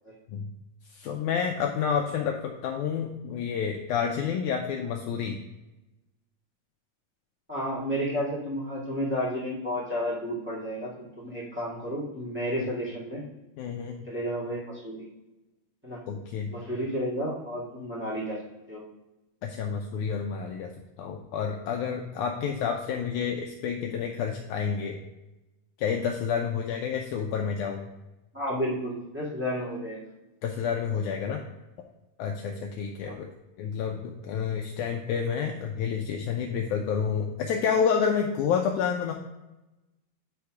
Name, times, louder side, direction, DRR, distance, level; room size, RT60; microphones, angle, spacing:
voice 1, 0.9-5.4 12.6-12.7 13.6-14.0 16.1-16.6 19.4-20.7 21.0-25.0 25.8-27.9 30.4-31.4 32.2-33.3 33.6-39.1, left 7 dB, 80° left, 2 dB, 1.9 m, -29 dB
voice 2, 7.5-10.9 11.2-13.2 14.0-15.0 15.8-16.0 16.5-18.4 18.7-18.8 28.3-30.1 33.0-33.2, equal, 5° right, -7 dB, 1.1 m, -31 dB
9.9 x 3.4 x 4.8 m, 1.0 s
omnidirectional pair, 3.9 m